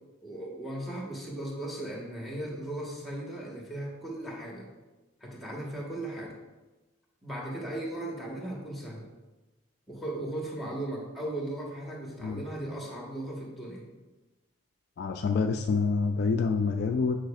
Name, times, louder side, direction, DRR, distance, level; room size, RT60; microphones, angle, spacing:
voice 1, 0.2-4.7 5.2-6.4 7.2-9.1 9.9-13.9, right 1 dB, ahead, -3 dB, 1.3 m, -37 dB
voice 2, 15.0-17.2, left 4 dB, 50° left, 5 dB, 0.3 m, -27 dB
8.9 x 4.9 x 2.4 m, 1.1 s
head